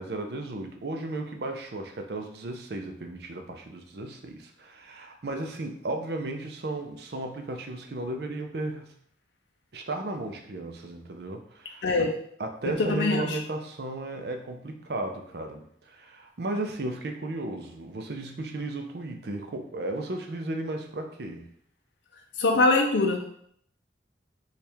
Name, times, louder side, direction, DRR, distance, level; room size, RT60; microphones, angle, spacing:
voice 1, 0.0-8.9 9.7-11.8 12.4-21.5, right 2 dB, 55° right, 4 dB, 0.5 m, -34 dB
voice 2, 11.8-12.2 12.6-13.4 22.4-23.4, left 3 dB, 70° left, 2 dB, 0.5 m, -23 dB
4.4 x 2.4 x 3.4 m, 0.66 s
head